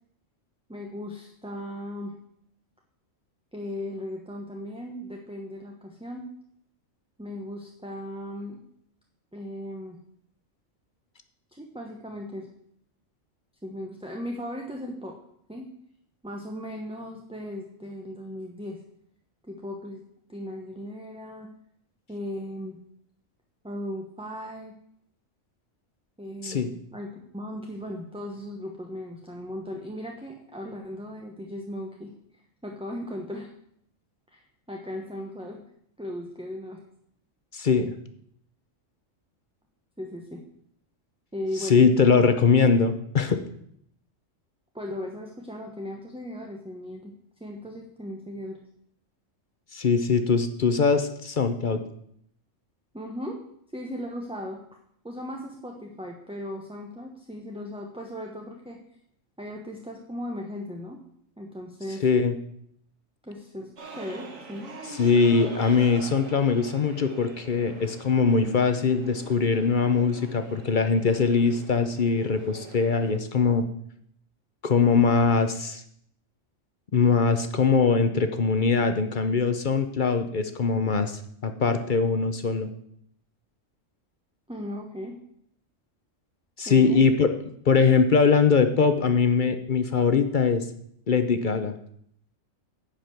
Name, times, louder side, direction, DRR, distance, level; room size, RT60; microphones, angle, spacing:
voice 1, 0.7-2.1 3.5-6.2 7.2-8.6 9.3-10.0 11.5-12.5 13.6-15.2 15.5-15.7 16.2-18.8 19.4-20.0 20.3-21.5 22.1-22.8 23.6-24.8 26.2-32.1 32.6-33.5 34.3-35.6 36.0-36.8 40.0-40.4 41.3-41.8 44.7-47.1 47.4-48.6 52.9-53.4 53.7-54.6 55.0-58.8 59.4-61.0 61.4-62.0 63.2-64.7 84.5-85.1 86.6-87.0, left 1 dB, 5° right, 1 dB, 0.9 m, -37 dB
voice 2, 37.5-37.9 41.6-43.4 49.7-51.8 62.0-62.3 64.9-73.7 74.6-75.8 76.9-82.7 86.6-87.3 87.7-90.7 91.1-91.7, left 5 dB, 45° left, 8 dB, 0.7 m, -22 dB
sound 1, 63.8-73.2, right 3 dB, 80° right, 1.8 m, -44 dB
10.0 x 5.2 x 7.7 m, 0.69 s
omnidirectional pair, 1.3 m